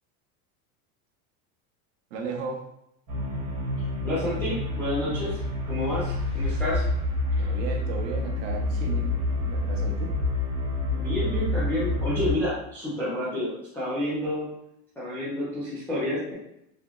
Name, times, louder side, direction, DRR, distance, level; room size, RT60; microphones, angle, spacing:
voice 1, 2.1-2.7 7.4-10.2, right 4 dB, 60° right, 2 dB, 0.8 m, -35 dB
sound 1, 3.1-12.3, left 2 dB, 45° right, 1.4 m, -28 dB
voice 2, 4.0-5.4 5.6-6.8 11.0-14.5 15.0-16.3, left 1 dB, 5° left, -12 dB, 0.3 m, -29 dB
3.5 x 2.8 x 2.3 m, 0.79 s
supercardioid pair, 160°, 42 cm